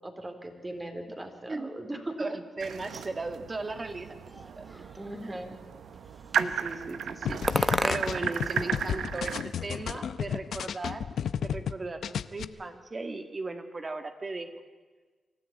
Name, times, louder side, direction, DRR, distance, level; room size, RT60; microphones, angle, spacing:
voice 1, 0.0-2.4 5.0-5.6, right 1 dB, 25° right, 5 dB, 3.9 m, -38 dB
voice 2, 2.2-4.2 4.5-4.8 5.2-5.3 6.4-11.1 11.4-14.6, right 3 dB, 40° right, 7 dB, 2.2 m, -37 dB
sound 1, 2.6-9.4, right 8 dB, 80° right, 0.9 m, -35 dB
sound 2, 4.3-5.3 5.9-6.6 7.5-8.4 8.7-9.8, equal, 5° left, 1.1 m, -33 dB
sound 3, 7.3-11.7 12.0-12.4, left 8 dB, 80° left, 0.6 m, -32 dB
25.0 x 13.5 x 8.9 m, 1.4 s
cardioid pair, 55°, 0 cm